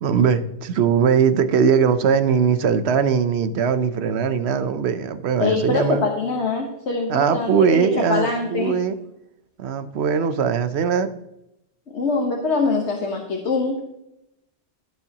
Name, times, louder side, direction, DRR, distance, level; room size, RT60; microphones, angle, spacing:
voice 1, 0.0-6.1 7.1-9.0 9.6-11.1, right 6 dB, 70° right, 12 dB, 1.0 m, -20 dB
voice 2, 5.4-8.7 11.9-14.0, left 3 dB, 80° left, 1 dB, 1.5 m, -24 dB
15.5 x 7.2 x 2.9 m, 0.85 s
omnidirectional pair, 1.1 m